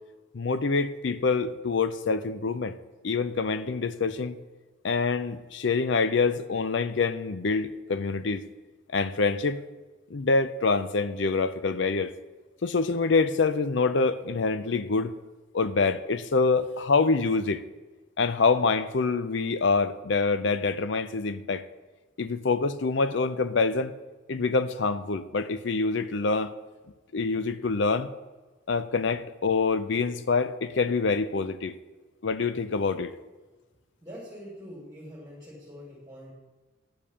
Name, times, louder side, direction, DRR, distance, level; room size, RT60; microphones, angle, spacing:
voice 1, 0.3-2.8 3.0-4.4 4.8-8.4 8.9-9.6 10.1-12.1 12.6-15.1 15.5-17.6 18.2-21.6 22.2-23.9 24.3-26.5 27.1-28.1 28.7-31.8 32.2-33.1, left 4 dB, 60° left, 13 dB, 0.5 m, -26 dB
voice 2, 34.0-36.3, equal, 15° right, -7 dB, 2.4 m, -44 dB
10.5 x 5.2 x 6.9 m, 1.2 s
head